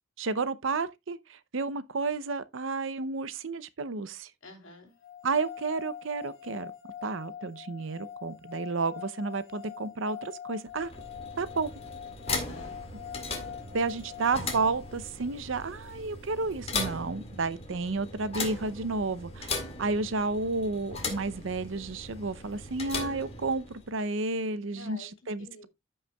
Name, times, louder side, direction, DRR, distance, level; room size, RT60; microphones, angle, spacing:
voice 1, 0.2-4.3 5.2-6.7 7.0-10.9 11.4-11.7 13.7-19.5 19.8-25.7, right 3 dB, 70° right, 0.6 m, -31 dB
voice 2, 4.4-4.9 12.2-12.7 24.7-25.1 25.4-25.7, left 2 dB, 75° left, 3.1 m, -47 dB
sound 1, 5.0-15.1, left 9 dB, 55° left, 3.7 m, -44 dB
sound 2, 10.7-24.0, left 3 dB, 30° left, 2.0 m, -38 dB
14.0 x 5.5 x 2.3 m
head